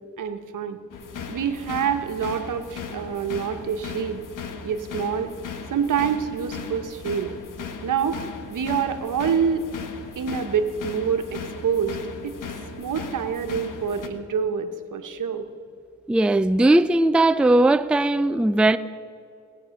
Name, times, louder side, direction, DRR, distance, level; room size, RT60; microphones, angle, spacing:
voice 1, 0.2-0.8 1.3-4.2 4.6-5.3 5.7-7.3 7.8-8.2 8.5-9.6 10.2-12.0 12.2-12.3 12.8-15.5, right 7 dB, 80° right, 1.1 m, -26 dB
sound 1, 0.9-14.1, left 5 dB, 85° left, 1.2 m, -37 dB
voice 2, 16.1-18.8, right 2 dB, 5° right, 0.4 m, -18 dB
19.0 x 8.5 x 6.5 m
cardioid pair, 65°, 31 cm